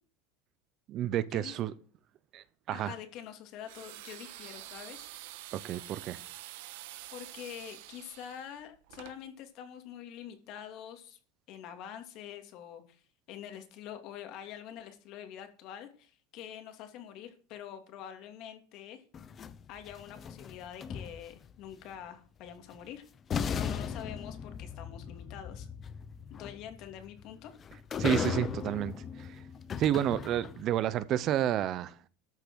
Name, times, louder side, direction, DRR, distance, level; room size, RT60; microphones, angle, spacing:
voice 1, 0.9-1.7 2.3-2.9 5.5-6.2 28.0-29.4 29.8-32.0, right 11 dB, 40° right, 0.7 m, -30 dB
voice 2, 2.7-5.1 7.1-11.2 11.5-13.0 13.3-19.0 19.7-23.0 23.5-25.7 26.3-27.5, left 9 dB, 45° left, 2.7 m, -45 dB
sound 1, 3.6-9.2, right 15 dB, 75° right, 1.3 m, -47 dB
sound 2, 19.1-21.5 22.7-22.8 23.3-30.8, left 7 dB, 25° left, 0.7 m, -37 dB
13.5 x 6.7 x 6.3 m
supercardioid pair, 155°, 0 cm